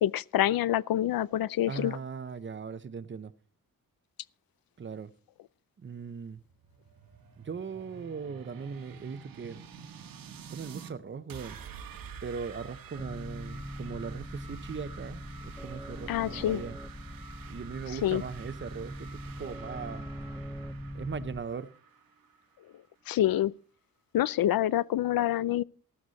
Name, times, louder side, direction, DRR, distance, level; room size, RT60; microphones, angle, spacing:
voice 1, 0.0-1.9 16.1-16.6 18.0-18.2 23.1-23.5 24.1-25.6, left 12 dB, 85° left, 0.6 m, -26 dB
voice 2, 1.7-3.3 4.8-5.1 5.8-6.4 7.4-9.6 10.5-11.6 12.2-16.8 17.5-20.5 20.9-21.7, right 5 dB, 35° right, 0.8 m, -39 dB
sound 1, 6.3-10.9 11.3-22.9, right 6 dB, 75° right, 1.7 m, -49 dB
sound 2, 13.0-21.4, equal, 5° left, 0.6 m, -42 dB
15.5 x 13.0 x 4.1 m
wide cardioid pair, 165°, 34 cm